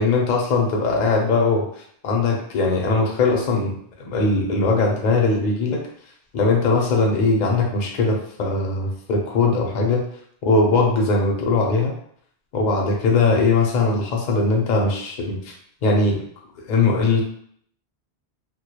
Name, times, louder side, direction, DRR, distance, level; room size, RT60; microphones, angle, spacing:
voice 1, 0.0-1.7 2.0-3.8 4.1-5.8 6.3-10.0 10.4-11.9 12.5-15.5 15.8-16.2 16.7-17.2, left 3 dB, 55° left, 0 dB, 0.6 m, -20 dB
2.2 x 2.1 x 2.8 m, 0.65 s
omnidirectional pair, 1.1 m